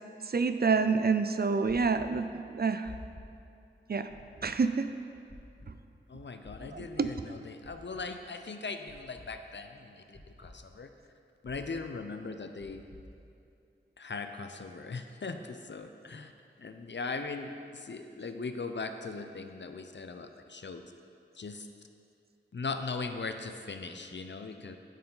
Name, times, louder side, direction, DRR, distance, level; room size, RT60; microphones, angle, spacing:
voice 1, 0.3-2.9 3.9-4.1 4.4-4.9 5.7-5.8 6.6-7.3, right 5 dB, 50° right, 10 dB, 0.4 m, -28 dB
sound 1, 1.7-2.1 2.8-3.3 4.1-4.5 5.3-5.7 6.4-6.9 7.6-8.0 8.9-9.3 10.1-10.5 11.4-11.8 12.6-13.0, left 2 dB, 35° left, 1.5 m, -49 dB
voice 2, 6.1-10.9 11.4-12.8 14.0-16.3 16.6-20.8 21.3-21.7 22.5-24.8, left 4 dB, 65° left, 7 dB, 0.6 m, -39 dB
9.1 x 6.9 x 3.9 m, 2.6 s
wide cardioid pair, 45°, 20 cm